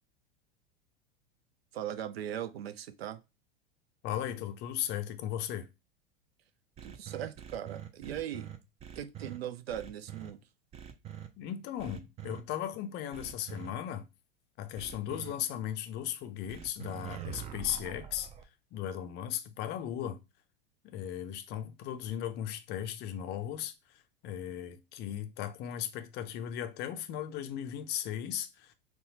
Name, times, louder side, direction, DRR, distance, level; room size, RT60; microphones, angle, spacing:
voice 1, 1.7-3.2 6.8-8.5 9.0-10.4, right 10 dB, 80° right, 0.5 m, -39 dB
voice 2, 4.0-5.7 11.4-14.1 14.6-18.3 18.7-20.2 20.8-28.7, left 10 dB, 35° left, 0.5 m, -37 dB
sound 1, 6.8-9.4 9.7-10.3 10.7-11.3 11.8-12.4 13.1-13.7 14.8-15.3 16.5-18.4, right 10 dB, 20° right, 0.4 m, -44 dB
4.1 x 2.2 x 2.7 m
figure-of-eight pair, 90°, 30 cm